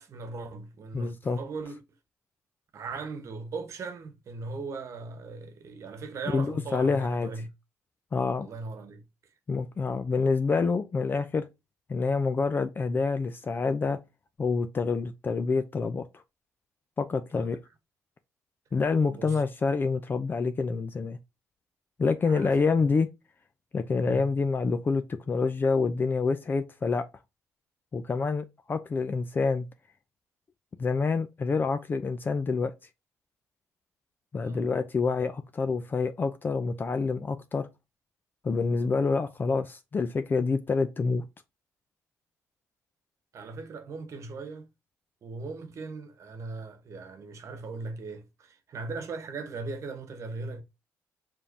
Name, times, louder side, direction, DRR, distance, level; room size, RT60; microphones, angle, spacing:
voice 1, 0.0-1.8 2.7-7.5 8.4-9.0 17.4-17.6 19.0-19.4 22.2-22.5 24.0-24.3 34.4-34.7 43.3-44.7 45.2-50.6, right 3 dB, 55° right, 1.1 m, -39 dB
voice 2, 0.9-1.4 6.3-6.5 6.7-7.3 8.1-8.5 9.5-11.5 11.9-14.0 14.4-16.1 17.0-17.6 18.7-21.2 22.0-23.1 23.7-27.0 27.9-29.7 30.8-32.7 34.3-37.7 38.4-41.2, left 4 dB, 35° left, 0.5 m, -27 dB
5.0 x 3.6 x 2.7 m
cardioid pair, 85°, 6 cm